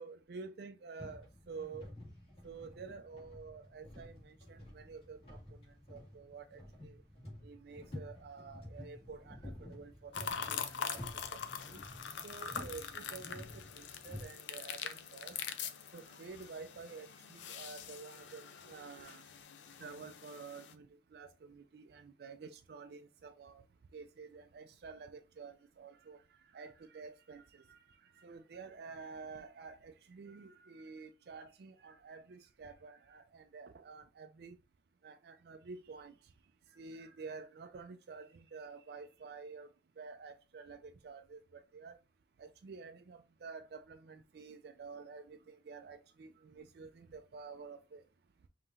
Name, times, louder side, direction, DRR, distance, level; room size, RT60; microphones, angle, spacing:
voice 1, 0.0-1.9 2.4-5.4 5.9-7.0 7.4-11.8 12.2-15.6 15.9-19.2 19.8-23.6 23.9-34.6 35.0-36.1 36.7-39.7 40.0-42.0 42.4-48.0, right 4 dB, 60° right, 0.4 m, -50 dB
sound 1, 1.0-14.2, left 1 dB, 35° left, 2.2 m, -51 dB
sound 2, 10.1-20.7, left 7 dB, 90° left, 0.5 m, -44 dB
5.5 x 2.9 x 2.5 m
head